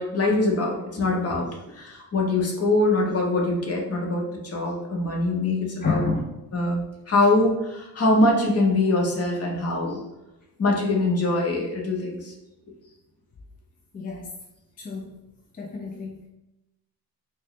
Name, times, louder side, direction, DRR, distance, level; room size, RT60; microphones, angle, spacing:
voice 1, 0.0-6.0 6.5-6.8 7.1-10.0 10.6-12.3, left 2 dB, 40° left, -1 dB, 0.9 m, -23 dB
voice 2, 5.8-6.3 13.9-14.3 14.8-15.2 15.6-16.3, left 4 dB, 25° left, 0 dB, 0.3 m, -29 dB
4.3 x 2.0 x 3.2 m, 0.96 s
cardioid pair, 125°, 38 cm